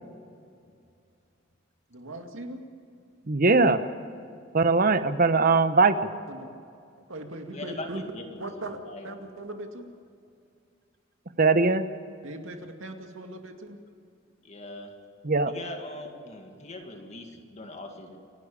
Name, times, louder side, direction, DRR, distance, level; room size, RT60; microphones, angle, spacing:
voice 1, 1.9-2.6 6.3-6.5 7.1-8.0 8.4-8.8 9.0-9.9 12.2-13.8, right 2 dB, 85° right, 4 dB, 2.3 m, -39 dB
voice 2, 3.3-3.8 4.5-5.9 11.4-11.9 15.2-15.5, right 3 dB, 45° right, 11 dB, 1.0 m, -20 dB
voice 3, 7.5-8.4 8.9-9.0 14.4-14.9 15.5-18.2, left 2 dB, 35° left, 3 dB, 2.1 m, -40 dB
28.0 x 12.0 x 8.7 m, 2.3 s
head